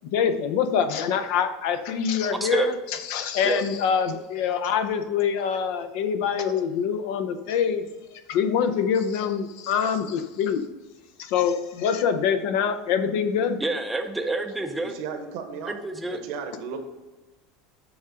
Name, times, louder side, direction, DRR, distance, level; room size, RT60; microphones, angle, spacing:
voice 1, 0.1-2.7 3.1-7.9 8.1-10.6 11.2-13.6, left 7 dB, 60° left, 9 dB, 0.6 m, -25 dB
voice 2, 2.4-2.7 3.4-3.6 13.6-14.9 15.6-16.2, right 2 dB, 5° right, 5 dB, 0.5 m, -28 dB
voice 3, 14.8-15.8 16.1-16.8, right 6 dB, 60° right, 6 dB, 1.0 m, -35 dB
7.1 x 3.6 x 4.9 m, 1.1 s
supercardioid pair, 160°, 0 cm